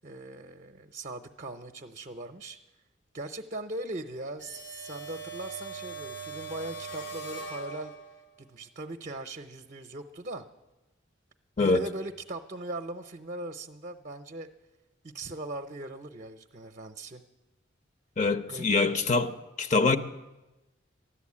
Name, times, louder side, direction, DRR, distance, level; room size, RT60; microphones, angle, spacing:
voice 1, 0.0-2.6 3.1-7.9 8.4-10.4 11.6-14.5 15.0-17.2 18.5-19.0, right 2 dB, 40° right, 0.6 m, -39 dB
sound 1, 4.4-8.3, right 3 dB, 85° left, 2.9 m, -41 dB
voice 2, 18.2-19.3 19.6-20.0, left 3 dB, 40° left, 0.7 m, -24 dB
13.5 x 11.5 x 8.5 m
head